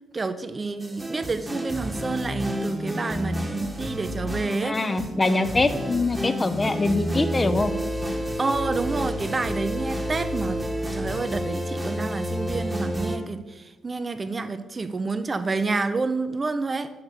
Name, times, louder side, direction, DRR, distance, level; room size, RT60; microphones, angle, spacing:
voice 1, 0.1-4.8 8.4-10.6 10.9-16.9, right 3 dB, 30° right, 11 dB, 0.5 m, -29 dB
sound 1, 0.8-13.2, equal, 10° right, 1.2 m, -30 dB
voice 2, 4.5-7.7, left 2 dB, 25° left, 11 dB, 0.7 m, -24 dB
6.5 x 5.7 x 6.5 m, 1.1 s
hypercardioid pair, 45°, 0 cm